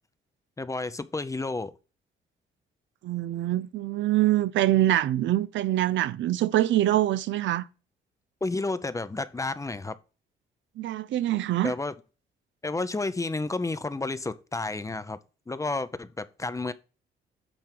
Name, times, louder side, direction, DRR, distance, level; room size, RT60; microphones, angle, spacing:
voice 1, 0.6-1.7 8.4-9.9 11.6-11.9 12.6-15.2 15.5-16.7, left 3 dB, 15° left, 0.6 m, -31 dB
voice 2, 3.0-7.6 10.8-11.7, right 14 dB, 70° right, 0.5 m, -24 dB
8.9 x 3.4 x 5.9 m
cardioid pair, 90°, 20 cm